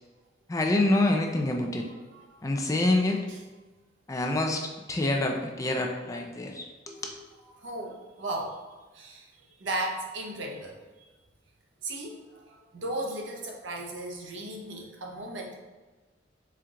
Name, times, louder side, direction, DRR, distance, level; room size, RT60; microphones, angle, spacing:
voice 1, 0.5-1.9 2.4-3.3 4.1-7.1, left 2 dB, 15° left, 2 dB, 0.3 m, -27 dB
voice 2, 7.5-11.1 11.8-15.6, right 1 dB, 75° right, 0 dB, 0.8 m, -36 dB
4.4 x 2.4 x 3.7 m, 1.2 s
head